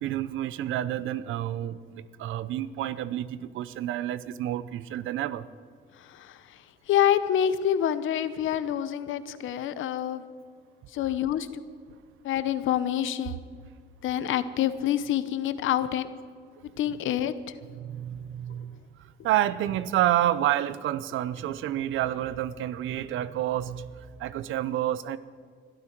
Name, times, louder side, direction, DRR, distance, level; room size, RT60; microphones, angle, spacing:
voice 1, 0.0-5.5 17.8-18.9 19.2-25.2, right 12 dB, 85° right, 16 dB, 0.7 m, -29 dB
voice 2, 5.9-10.3 10.9-11.6 12.2-13.4 14.0-16.1 16.8-17.6, left 10 dB, 80° left, 13 dB, 0.9 m, -27 dB
21.5 x 13.0 x 4.6 m, 2.2 s
cardioid pair, 90°, 20 cm